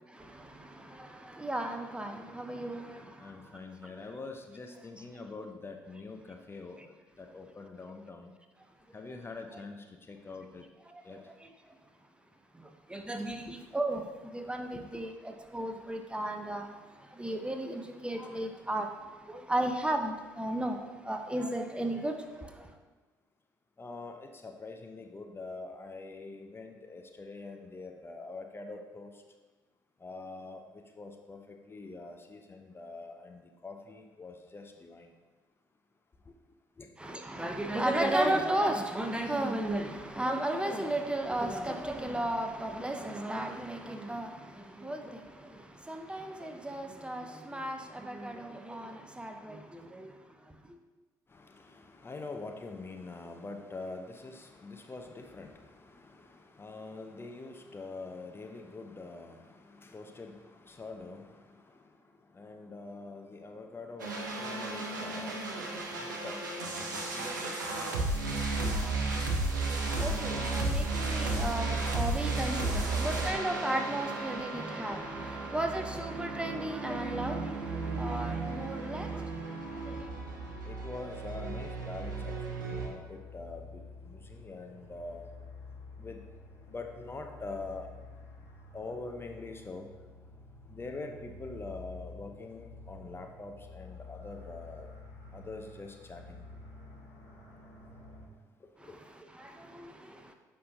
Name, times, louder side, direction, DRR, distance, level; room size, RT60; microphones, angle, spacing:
voice 1, 1.4-2.8 12.9-14.0 14.3-16.7 17.2-18.9 19.3-20.8 21.1-22.5 37.0-44.3 44.8-45.0 45.9-49.6 49.9-50.1 70.0-77.6 77.8-79.1, right 1 dB, 10° right, 0.7 m, -34 dB
voice 2, 3.2-8.3 8.9-10.6 11.1-11.2 14.7-14.8 23.8-29.1 30.0-30.6 31.0-31.4 31.7-35.1 36.8-36.9 51.3-61.4 62.4-65.4 66.0-66.4 67.1-67.7 72.5-72.6 73.0-73.1 80.6-85.3 86.0-86.2 86.7-87.9 88.7-89.9 90.7-94.9 95.3-96.4 98.9-99.0, left 3 dB, 25° left, 0.7 m, -44 dB
sound 1, 64.0-82.9, right 3 dB, 80° right, 0.8 m, -34 dB
sound 2, 81.2-98.2, left 3 dB, 60° left, 2.0 m, -50 dB
9.5 x 5.6 x 2.7 m
figure-of-eight pair, 50°, 10 cm